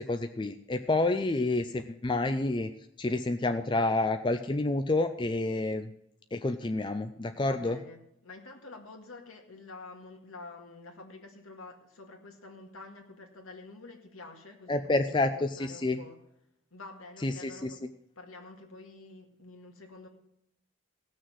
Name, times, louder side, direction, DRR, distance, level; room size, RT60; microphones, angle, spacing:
voice 1, 0.0-2.7 3.0-5.9 6.3-7.8 14.7-16.0 17.2-17.7, left 2 dB, 20° left, 7 dB, 0.4 m, -29 dB
voice 2, 7.4-16.2 16.7-17.8 18.2-20.1, left 3 dB, 70° left, 3 dB, 2.0 m, -48 dB
17.0 x 6.4 x 6.2 m, 0.79 s
head